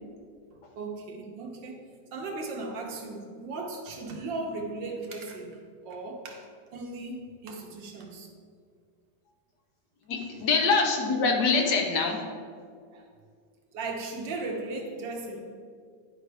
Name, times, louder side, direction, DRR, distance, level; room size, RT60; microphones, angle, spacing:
voice 1, 0.8-1.8 2.1-5.6 5.8-8.3 11.6-11.7 12.9-13.0 13.7-15.4, right 3 dB, 75° right, 1 dB, 1.7 m, -37 dB
voice 2, 10.1-12.2, left 4 dB, 70° left, 1 dB, 1.5 m, -24 dB
10.5 x 5.3 x 3.4 m, 2.1 s
omnidirectional pair, 2.0 m